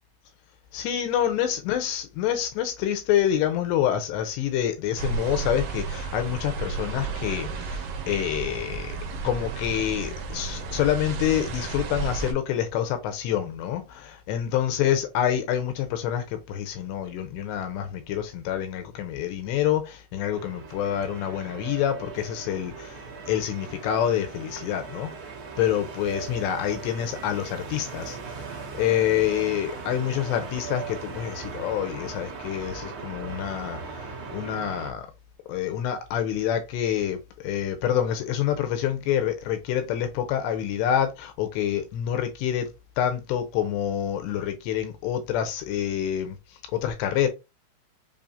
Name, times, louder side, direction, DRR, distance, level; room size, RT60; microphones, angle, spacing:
voice 1, 0.7-9.0 9.2-25.1 25.6-35.1 35.5-42.7 43.0-46.4 46.7-47.3, left 10 dB, 80° left, 2.7 m, -27 dB
sound 1, 5.0-12.3, right 4 dB, 70° right, 2.4 m, -32 dB
sound 2, 20.3-34.9, right 5 dB, 90° right, 1.1 m, -38 dB
7.0 x 2.9 x 2.6 m
omnidirectional pair, 5.2 m